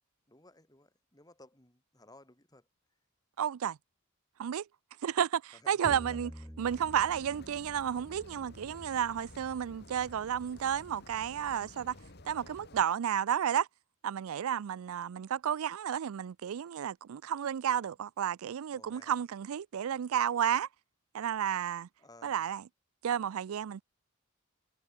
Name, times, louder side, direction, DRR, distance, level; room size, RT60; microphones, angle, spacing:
voice 1, 0.3-2.7 5.5-7.1 18.7-19.2 22.0-22.4, left 2 dB, 15° left, 4.3 m, -58 dB
voice 2, 3.4-3.8 4.4-4.6 5.0-6.3 6.6-11.9 12.3-13.7 14.0-20.7 21.1-21.9 22.2-22.6 23.0-23.8, right 9 dB, 75° right, 0.4 m, -32 dB
Bowed string instrument, 5.8-11.4, equal, 5° right, 0.8 m, -49 dB
sound 1, 6.6-12.8, left 2 dB, 50° left, 2.6 m, -53 dB
head